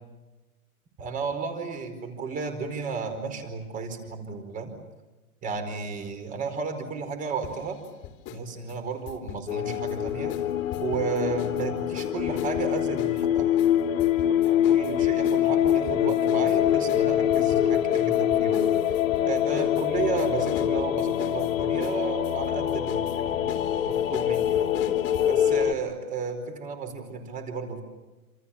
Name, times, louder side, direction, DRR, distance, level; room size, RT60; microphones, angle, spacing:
voice 1, 1.0-4.7 5.4-7.8 8.3-10.4 10.8-13.6 14.4-18.7 19.2-24.7 25.3-27.8, right 5 dB, 20° right, 7 dB, 4.7 m, -33 dB
sound 1, 7.4-8.4 8.7-11.6 12.0-25.3, left 8 dB, 25° left, 3.2 m, -41 dB
sound 2, 9.5-25.7, left 10 dB, 65° left, 2.3 m, -24 dB
28.5 x 28.5 x 7.3 m, 1.1 s
hypercardioid pair, 155°, 43 cm